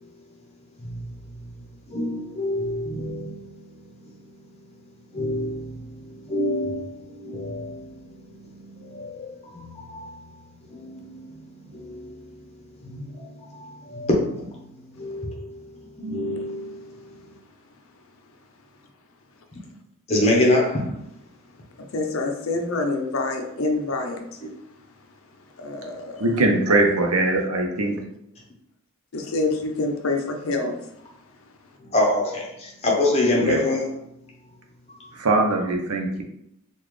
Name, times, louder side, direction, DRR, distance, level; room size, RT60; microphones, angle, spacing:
voice 1, 0.8-4.1 5.1-10.4 10.7-12.4 12.8-17.2 20.1-20.9 31.8-33.9 35.0-35.2, left 1 dB, 30° left, -2 dB, 0.9 m, -27 dB
voice 2, 21.9-24.4 25.6-26.4 29.1-30.9, left 3 dB, 65° left, 4 dB, 0.6 m, -27 dB
voice 3, 26.2-28.0 33.4-33.6 35.2-36.2, right 2 dB, 85° right, 1 dB, 0.7 m, -21 dB
3.9 x 2.4 x 3.1 m, 0.78 s
head